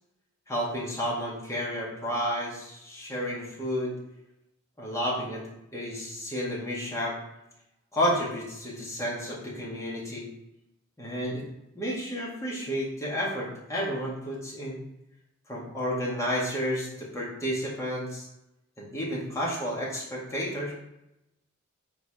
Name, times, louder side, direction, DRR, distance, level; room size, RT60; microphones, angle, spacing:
voice 1, 0.5-3.9 4.8-5.4 5.7-7.2 7.9-10.3 11.0-11.4 11.7-14.8 15.5-18.2 18.8-20.7, equal, 15° left, -6 dB, 1.8 m, -31 dB
4.8 x 4.7 x 4.8 m, 0.85 s
head